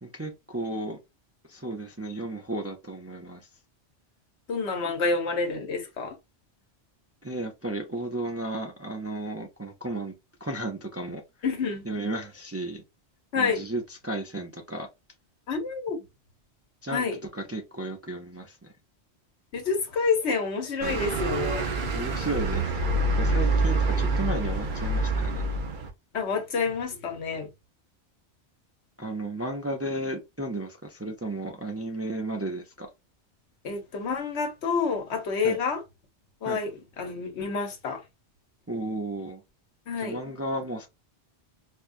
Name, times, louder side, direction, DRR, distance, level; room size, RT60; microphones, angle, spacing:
voice 1, 0.0-1.0 1.5-3.4 7.2-10.1 10.4-11.2 11.8-12.8 13.4-14.9 16.8-17.1 17.3-18.7 21.9-22.8 23.2-25.5 29.0-32.9 35.4-35.6 36.4-36.6 38.7-39.4 40.0-40.9, right 2 dB, 20° right, 0.4 m, -34 dB
voice 2, 4.5-6.1 11.4-11.8 13.3-13.6 15.5-16.0 16.9-17.2 19.5-21.7 26.1-27.5 33.6-35.8 36.4-36.7 37.0-38.0 39.9-40.2, left 5 dB, 85° left, 1.2 m, -28 dB
sound 1, 20.8-25.9, right 2 dB, 50° right, 0.8 m, -26 dB
4.4 x 2.3 x 2.5 m
omnidirectional pair, 1.1 m